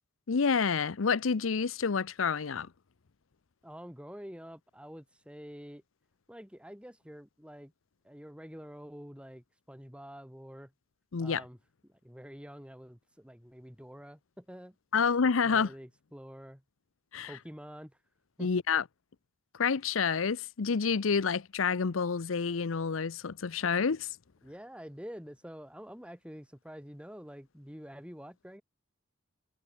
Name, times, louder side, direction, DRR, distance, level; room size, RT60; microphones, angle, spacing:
voice 1, 0.3-2.7 11.1-11.4 14.9-15.7 17.1-17.3 18.4-18.8 19.6-24.1, left 5 dB, 85° left, 0.7 m, -28 dB
voice 2, 3.6-5.8 6.3-7.7 8.0-10.7 11.2-11.6 11.9-15.0 15.4-16.6 17.2-18.0 18.4-18.5 24.4-28.6, equal, 5° right, 7.2 m, -47 dB
head